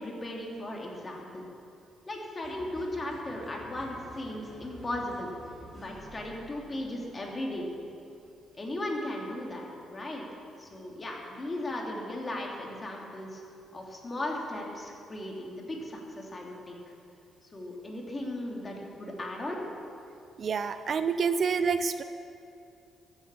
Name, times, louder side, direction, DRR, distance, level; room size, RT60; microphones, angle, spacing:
voice 1, 0.0-1.4 2.1-5.3 5.7-7.7 8.6-10.3 10.6-13.4 13.7-16.9 17.5-19.6, left 1 dB, 30° left, -1 dB, 2.8 m, -37 dB
sound 1, 2.4-8.3, equal, 10° right, 3.8 m, -50 dB
voice 2, 20.4-22.0, right 5 dB, 50° right, 11 dB, 0.5 m, -28 dB
14.5 x 8.1 x 7.0 m, 2.6 s
cardioid pair, 90°, 0 cm